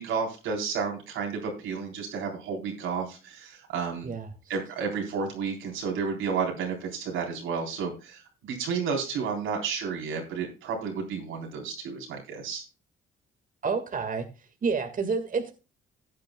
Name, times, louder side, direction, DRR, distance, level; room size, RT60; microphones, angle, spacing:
voice 1, 0.0-4.1 4.5-12.6, right 5 dB, 90° right, 2 dB, 3.8 m, -31 dB
voice 2, 13.6-14.3 14.6-15.5, right 5 dB, 45° right, 5 dB, 1.8 m, -28 dB
15.5 x 9.0 x 2.3 m, 0.31 s
cardioid pair, 90°, 20 cm